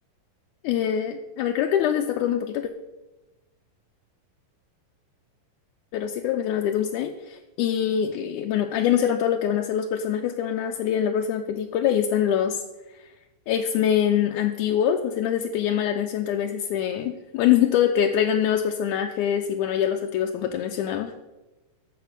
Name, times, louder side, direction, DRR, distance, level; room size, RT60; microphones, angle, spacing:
voice 1, 0.6-2.7 5.9-12.6 13.5-21.1, left 9 dB, 80° left, 3 dB, 1.9 m, -24 dB
13.5 x 5.0 x 6.6 m, 1.0 s
omnidirectional pair, 3.9 m